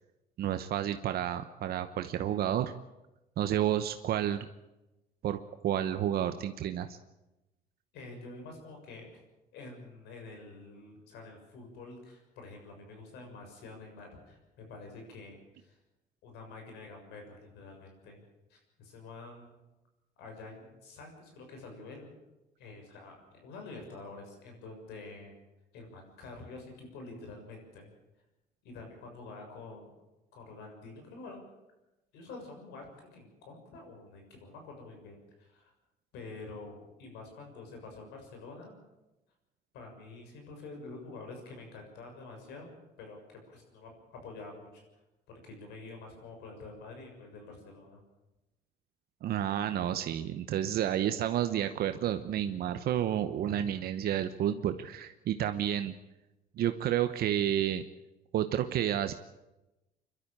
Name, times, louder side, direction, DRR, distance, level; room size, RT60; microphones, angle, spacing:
voice 1, 0.4-2.7 3.4-4.5 5.2-5.4 5.6-7.0 49.2-55.9 56.6-57.8 58.3-59.1, right 11 dB, 65° right, 8 dB, 1.0 m, -30 dB
voice 2, 7.9-9.2 9.5-15.8 16.2-18.2 18.5-19.6 20.2-22.1 22.6-25.3 25.7-27.9 28.6-29.9 30.3-31.4 32.1-35.7 36.1-38.8 39.7-42.7 43.0-44.8 45.3-48.0, left 3 dB, 85° left, 3 dB, 6.8 m, -47 dB
25.0 x 12.5 x 8.8 m, 0.99 s
cardioid pair, 110°, 17 cm